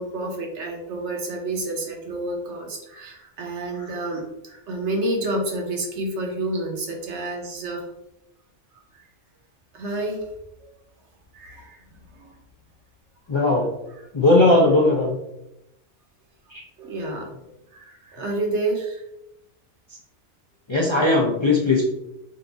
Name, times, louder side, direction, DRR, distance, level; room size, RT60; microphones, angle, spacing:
voice 1, 0.0-7.8 9.7-10.2 11.3-12.4 16.8-17.3 17.7-19.0, right 2 dB, 75° right, 1 dB, 1.1 m, -29 dB
voice 2, 13.3-13.7 14.1-15.2 16.5-16.6 20.7-21.8, left 2 dB, 40° left, -3 dB, 0.4 m, -18 dB
3.8 x 2.5 x 3.9 m, 0.87 s
omnidirectional pair, 1.2 m